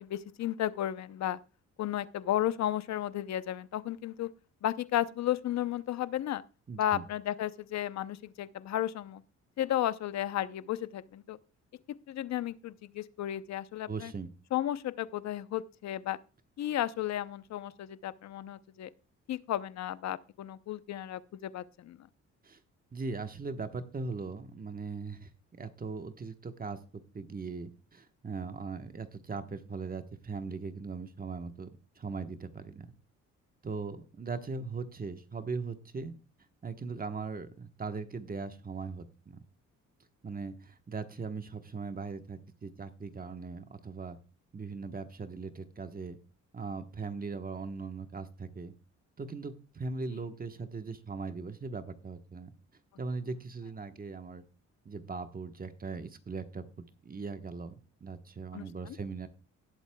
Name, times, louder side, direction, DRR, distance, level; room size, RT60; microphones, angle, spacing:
voice 1, 0.0-1.4 1.8-4.3 4.6-6.4 6.8-9.2 9.6-11.4 12.1-14.1 14.5-16.2 16.6-18.9 19.3-22.1 58.5-59.0, left 12 dB, 65° left, 0.7 m, -33 dB
voice 2, 6.7-7.0 13.9-14.3 22.4-22.6 22.9-25.3 25.6-31.7 32.0-32.9 33.6-36.1 36.6-39.4 40.2-44.2 44.5-46.2 46.5-48.7 49.2-52.5 53.0-54.4 54.8-56.6 57.0-59.3, right 4 dB, 30° right, 1.2 m, -39 dB
18.0 x 8.1 x 2.3 m
cardioid pair, 90°, 30 cm